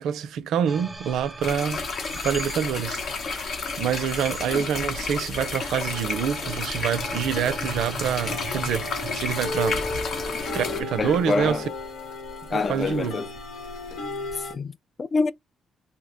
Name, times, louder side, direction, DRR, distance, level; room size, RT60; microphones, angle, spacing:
voice 1, 0.0-1.8 2.2-9.8 10.5-11.6 12.5-13.2, right 8 dB, 80° right, 0.5 m, -27 dB
sound 1, 0.7-13.1, right 2 dB, 15° right, 0.5 m, -41 dB
sound 2, 1.2-2.8 3.1-3.6 3.8-14.5, left 2 dB, 80° left, 1.2 m, -35 dB
sound 3, 1.4-10.8, left 4 dB, 65° left, 0.8 m, -31 dB
voice 2, 11.0-11.7 12.5-13.3 14.3-15.3, left 4 dB, 40° left, 0.3 m, -26 dB
2.8 x 2.1 x 3.8 m
cardioid pair, 90°, 0 cm